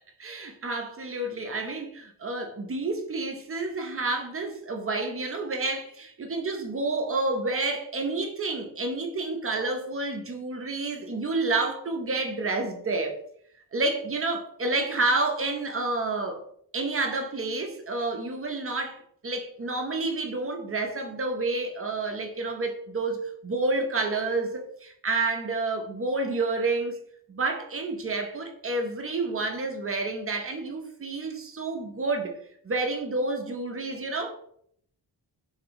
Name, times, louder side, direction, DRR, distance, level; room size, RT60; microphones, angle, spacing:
voice 1, 0.2-13.2 13.7-16.4 16.7-27.0 27.3-32.3 32.6-34.3, right 3 dB, 30° right, 0.6 m, -29 dB
3.2 x 2.7 x 2.5 m
cardioid pair, 80°, 43 cm